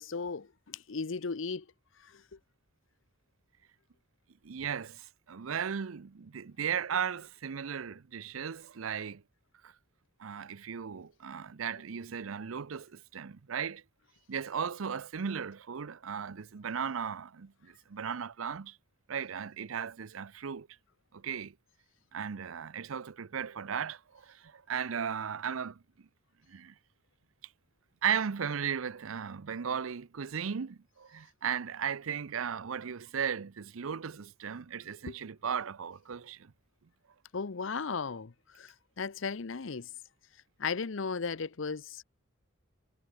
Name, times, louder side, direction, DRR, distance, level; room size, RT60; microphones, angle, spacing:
voice 1, 0.0-1.7 2.0-2.4 35.1-35.2 37.3-39.9 40.6-42.0, left 5 dB, 70° left, 0.7 m, -36 dB
voice 2, 4.4-9.2 9.6-9.7 10.2-13.8 14.3-18.8 19.1-20.7 21.1-21.5 22.1-25.8 26.5-26.7 28.0-36.5, right 7 dB, 85° right, 0.6 m, -36 dB
head